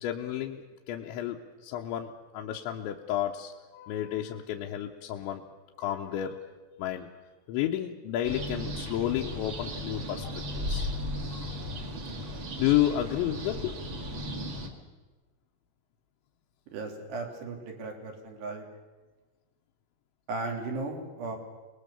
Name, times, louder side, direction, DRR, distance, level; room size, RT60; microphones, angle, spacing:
voice 1, 0.0-5.4 5.8-6.4 6.8-7.1 7.5-10.9 11.3-11.6 12.6-13.8, left 12 dB, 80° left, 0 dB, 3.2 m, -31 dB
sound 1, 8.2-14.7, left 1 dB, 40° right, 1.9 m, -35 dB
voice 2, 16.7-18.6 20.3-21.4, right 3 dB, 65° right, 2 dB, 4.8 m, -36 dB
26.0 x 20.0 x 7.0 m, 1.2 s
omnidirectional pair, 5.5 m